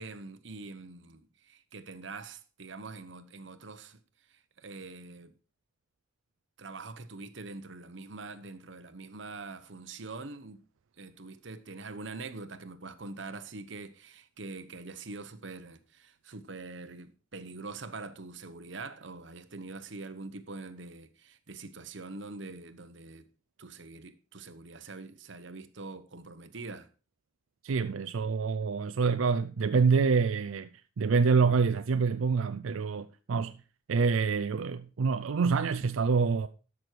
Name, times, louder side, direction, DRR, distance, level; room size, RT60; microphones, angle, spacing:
voice 1, 0.0-4.0 4.3-5.3 6.6-10.6 11.0-23.3 23.6-26.9, right 3 dB, 65° right, 1.0 m, -44 dB
voice 2, 27.6-30.7 31.0-33.6 33.9-36.5, right 5 dB, 90° right, 0.5 m, -26 dB
13.0 x 6.3 x 4.5 m
head